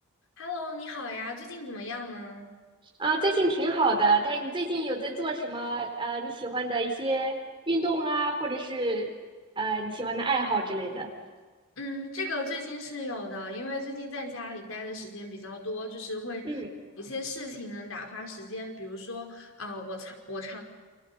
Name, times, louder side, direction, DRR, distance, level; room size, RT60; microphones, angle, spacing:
voice 1, 0.4-2.5 11.8-16.5 17.0-20.6, left 2 dB, 90° left, 2 dB, 5.0 m, -36 dB
voice 2, 3.0-7.4 7.7-9.1 9.6-11.1 16.4-16.7, right 2 dB, 25° right, 2 dB, 4.4 m, -27 dB
29.5 x 27.0 x 5.7 m, 1.5 s
head